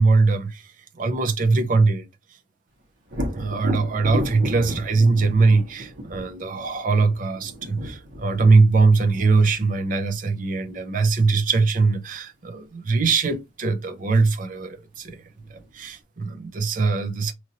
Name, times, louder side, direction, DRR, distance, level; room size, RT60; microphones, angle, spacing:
voice 1, 0.0-2.1 3.3-15.2 15.5-17.3, right 3 dB, 45° right, 0.5 m, -21 dB
Thunder, 3.1-10.8 14.4-14.5 15.0-15.9, equal, 65° right, 1.3 m, -34 dB
2.9 x 2.6 x 2.7 m
head